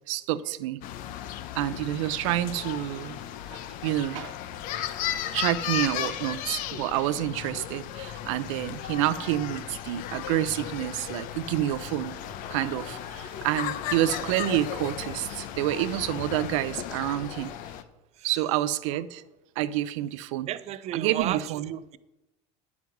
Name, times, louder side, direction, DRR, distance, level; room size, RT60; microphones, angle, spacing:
voice 1, 0.1-0.8 1.5-3.2 3.5-4.3 5.3-12.2 12.5-17.5 18.2-19.2 19.6-20.5 20.9-21.7, right 13 dB, 80° right, 13 dB, 0.6 m, -28 dB
sound 1, 0.8-17.8, left 11 dB, 60° left, 0.8 m, -35 dB
sound 2, 10.5-17.5, left 3 dB, 80° left, 3.2 m, -47 dB
voice 2, 20.5-21.4 21.7-22.0, right 12 dB, 45° right, 15 dB, 0.6 m, -33 dB
9.5 x 7.2 x 6.0 m, 0.96 s
supercardioid pair, 120°, 16 cm